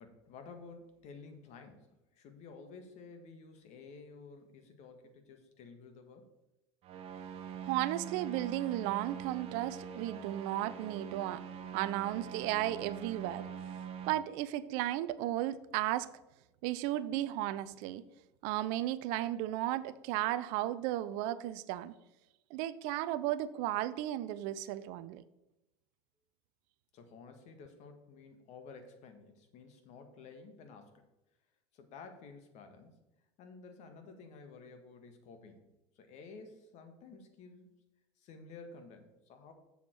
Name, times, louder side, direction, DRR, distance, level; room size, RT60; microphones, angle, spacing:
voice 1, 0.0-6.3 26.9-31.0 31.7-33.0 33.4-35.7 35.9-37.9 38.2-39.5, left 4 dB, 55° left, 6 dB, 1.7 m, -52 dB
sound 1, 6.8-14.1, right 7 dB, 40° right, 1.0 m, -44 dB
voice 2, 7.6-11.4 11.7-13.5 14.1-16.1 16.6-18.0 18.4-21.9 22.5-25.2, right 14 dB, 60° right, 15 dB, 0.5 m, -34 dB
7.2 x 7.0 x 4.5 m, 0.95 s
hypercardioid pair, 90°, 14 cm